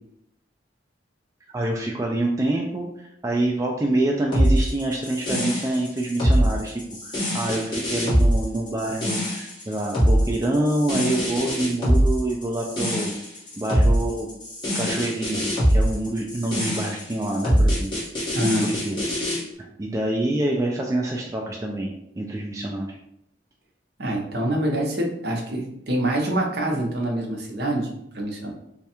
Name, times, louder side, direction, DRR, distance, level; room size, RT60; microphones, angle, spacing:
voice 1, 1.5-13.1 13.6-14.3 14.7-17.9 18.6-19.0 19.6-23.0, right 1 dB, 15° right, -1 dB, 0.3 m, -26 dB
sound 1, 4.3-19.4, equal, 25° left, 1.4 m, -23 dB
voice 2, 18.3-18.6 24.0-28.5, right 1 dB, 55° right, 0 dB, 0.8 m, -25 dB
3.2 x 2.3 x 4.3 m, 0.77 s
head